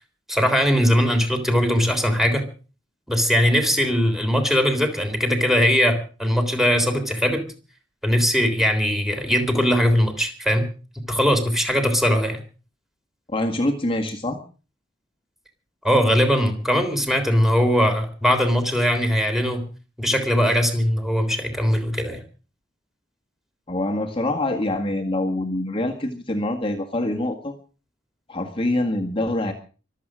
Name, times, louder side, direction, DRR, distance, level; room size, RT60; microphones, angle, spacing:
voice 1, 0.3-2.5 3.1-7.5 8.0-10.7 11.0-12.4 15.8-19.7 20.0-22.2, equal, ahead, 6 dB, 3.5 m, -20 dB
voice 2, 13.3-14.4 23.7-27.6 28.3-29.5, left 1 dB, 30° left, 3 dB, 1.9 m, -25 dB
24.5 x 8.4 x 6.3 m, 0.37 s
head